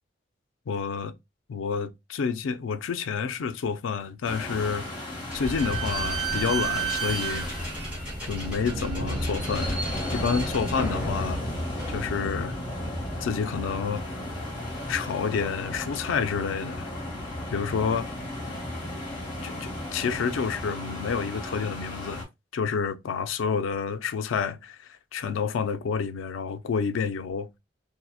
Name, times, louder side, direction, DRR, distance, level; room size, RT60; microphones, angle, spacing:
voice 1, 0.7-1.1 1.5-4.9 5.3-7.5 8.2-9.8 10.1-11.4 11.9-12.5 13.2-14.0 14.9-16.9 17.5-18.1 19.4-22.3 22.5-27.5, left 6 dB, 80° left, 0.4 m, -29 dB
sound 1, 4.2-22.2, left 1 dB, 25° left, 1.0 m, -35 dB
Slam / Squeak, 5.3-12.6, right 3 dB, 5° right, 1.0 m, -32 dB
2.6 x 2.0 x 2.3 m
head